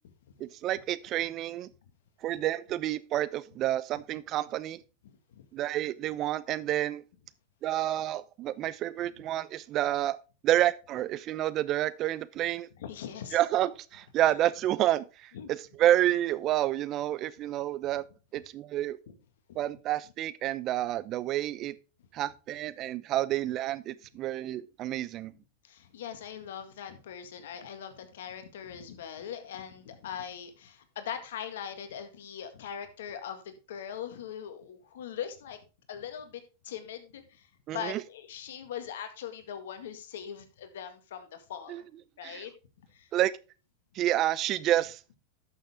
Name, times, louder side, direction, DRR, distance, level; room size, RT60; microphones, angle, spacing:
voice 1, 0.4-1.7 2.2-4.8 5.5-7.0 7.6-10.2 10.4-12.7 13.3-18.0 18.3-19.0 19.5-21.7 22.1-25.3 37.7-38.0 41.7-41.8 42.2-42.4 43.1-43.3 43.9-45.0, right 13 dB, 40° right, 0.7 m, -29 dB
voice 2, 5.0-5.5 12.8-13.4 15.3-15.5 19.5-19.6 25.6-35.6 35.9-41.8 42.2-42.5 42.9-43.1, left 9 dB, 75° left, 1.8 m, -41 dB
12.0 x 6.5 x 3.6 m
hypercardioid pair, 110°, 0 cm